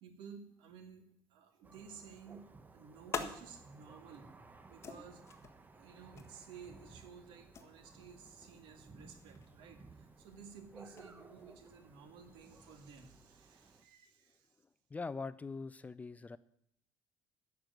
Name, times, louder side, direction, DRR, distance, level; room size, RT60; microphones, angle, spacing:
voice 1, 0.0-2.5 2.7-4.4 4.7-5.2 5.7-14.5, right 6 dB, 85° right, 7 dB, 2.1 m, -54 dB
Thunder, 1.6-13.8, right 3 dB, 20° right, 1.0 m, -58 dB
sound 1, 2.5-12.8, left 5 dB, 35° left, 1.5 m, -50 dB
voice 2, 14.9-16.4, left 4 dB, 20° left, 16 dB, 0.5 m, -42 dB
11.0 x 6.7 x 9.2 m, 0.69 s
cardioid pair, 125°, 8 cm